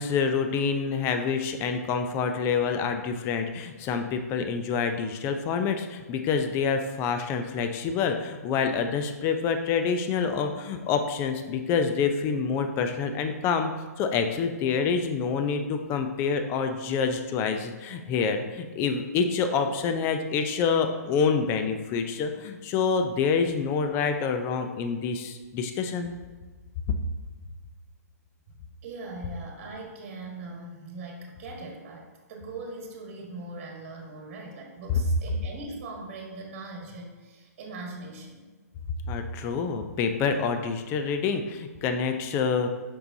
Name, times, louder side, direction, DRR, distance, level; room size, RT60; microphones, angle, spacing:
voice 1, 0.0-13.7 14.0-26.1 39.1-42.7, left 5 dB, 25° left, 7 dB, 0.5 m, -27 dB
voice 2, 28.8-38.4, right 2 dB, 45° right, 0 dB, 1.4 m, -40 dB
6.7 x 5.5 x 2.7 m, 1.3 s
hypercardioid pair, 130°, 9 cm